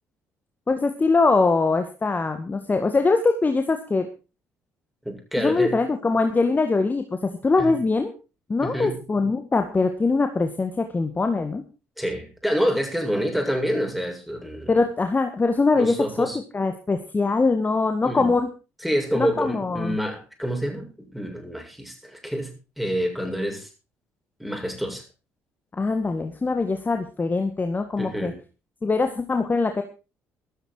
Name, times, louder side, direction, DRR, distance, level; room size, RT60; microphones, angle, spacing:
voice 1, 0.7-4.1 5.4-8.1 8.5-11.6 14.7-16.3 16.5-18.5 19.1-20.0 25.7-28.3 28.8-29.8, left 3 dB, 25° left, 6 dB, 1.9 m, -22 dB
voice 2, 5.0-5.8 7.6-7.7 8.6-9.0 12.0-14.8 15.8-16.4 18.0-18.3 18.8-23.7 24.4-25.0 28.0-28.4, equal, ahead, 3 dB, 7.1 m, -27 dB
15.0 x 13.0 x 4.7 m, 0.33 s
figure-of-eight pair, 50°, 7 cm